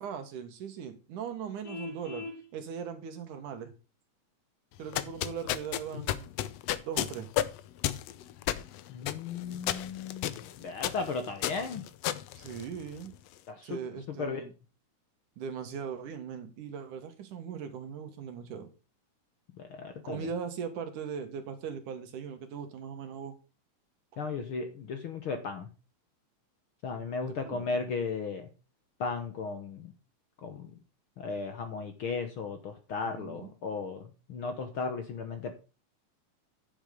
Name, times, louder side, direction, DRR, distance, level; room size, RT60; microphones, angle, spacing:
voice 1, 0.0-2.3 2.5-3.7 4.8-6.3 6.8-7.3 12.4-13.1 13.6-14.5 15.4-18.7 20.0-23.3 27.2-27.7 33.0-33.5, right 7 dB, 80° right, 7 dB, 3.1 m, -39 dB
Vehicle horn car horn honking, 1.6-2.4, left 3 dB, 35° left, 1.6 m, -40 dB
sound 1, 4.8-13.2, left 13 dB, 75° left, 1.5 m, -33 dB
voice 2, 8.9-11.8 13.5-13.8 14.1-14.4 19.6-20.3 24.2-25.7 26.8-28.5 29.0-29.9 30.4-30.8 31.2-35.5, left 4 dB, 60° left, 7 dB, 1.5 m, -36 dB
10.0 x 7.2 x 5.3 m, 0.32 s
omnidirectional pair, 3.6 m